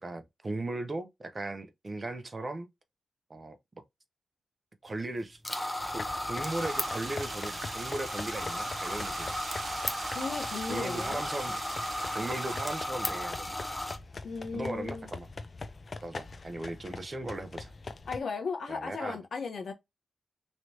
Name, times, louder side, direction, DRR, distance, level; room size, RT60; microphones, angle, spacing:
voice 1, 0.0-2.7 3.3-3.6 4.8-5.4 5.9-9.4 10.7-11.6 12.1-13.6 14.5-15.3 16.0-17.7 18.7-19.2, right 2 dB, 35° right, 0.7 m, -37 dB
sound 1, 5.4-14.0, left 1 dB, 10° left, 0.8 m, -35 dB
sound 2, 5.8-18.2, left 3 dB, 45° left, 0.5 m, -43 dB
sound 3, 6.4-12.8, right 5 dB, 65° right, 0.4 m, -43 dB
voice 2, 10.1-11.2 14.2-15.1 18.1-19.7, left 5 dB, 65° left, 0.9 m, -36 dB
3.1 x 3.0 x 2.7 m
cardioid pair, 65°, 0 cm